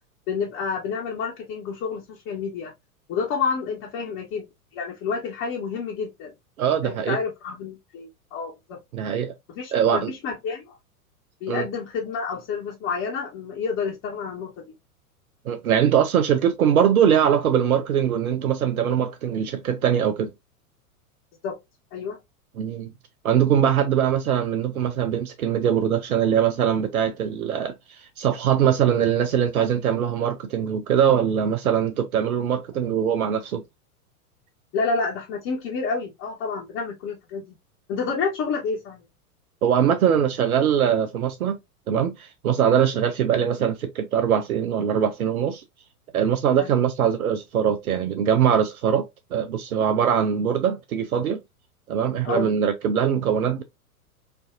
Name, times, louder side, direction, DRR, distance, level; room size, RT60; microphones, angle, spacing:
voice 1, 0.3-2.7 3.1-4.5 4.7-6.3 6.8-8.8 9.5-10.6 11.4-14.7 21.4-21.6 21.9-22.2 34.7-37.4 37.9-39.0 46.6-46.7 52.2-52.5, left 5 dB, 35° left, 1.2 m, -29 dB
voice 2, 6.6-7.2 8.9-9.3 9.7-10.1 11.5-11.7 15.5-20.3 22.6-22.9 23.2-27.7 28.2-33.6 39.6-41.6 41.9-45.6 46.1-49.1 49.3-51.4 51.9-53.6, right 8 dB, 70° right, 0.7 m, -22 dB
4.5 x 2.6 x 2.4 m
figure-of-eight pair, 95°, 45 cm